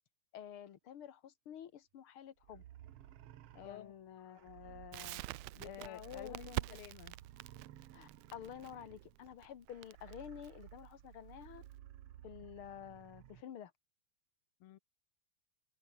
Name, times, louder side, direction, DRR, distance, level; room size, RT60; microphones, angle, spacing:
voice 1, 0.3-2.6 3.7-5.2 5.6-6.8 7.9-11.6 12.2-13.7, left 9 dB, 50° left, 2.0 m, -50 dB
sound 1, 2.4-13.4, right 12 dB, 65° right, 1.8 m, -56 dB
voice 2, 3.5-3.9 5.5-7.2 14.6-14.8, left 13 dB, 70° left, 1.3 m, -51 dB
Crackle, 4.9-11.7, right 20 dB, 80° right, 1.5 m, -46 dB
omnidirectional pair, 3.4 m